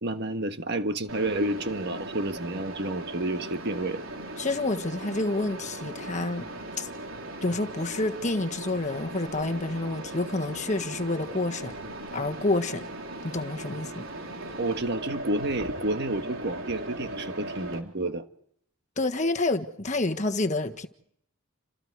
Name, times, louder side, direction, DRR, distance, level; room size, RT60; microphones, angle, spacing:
voice 1, 0.0-4.0 14.6-18.2, right 1 dB, 50° right, 1.5 m, -30 dB
Mechanisms, 1.1-17.8, right 2 dB, 70° right, 4.1 m, -38 dB
voice 2, 4.4-6.5 6.8-6.9 7.4-11.7 12.1-12.8 13.2-14.0 19.0-20.9, left 2 dB, 35° left, 1.5 m, -28 dB
29.0 x 26.5 x 4.8 m
head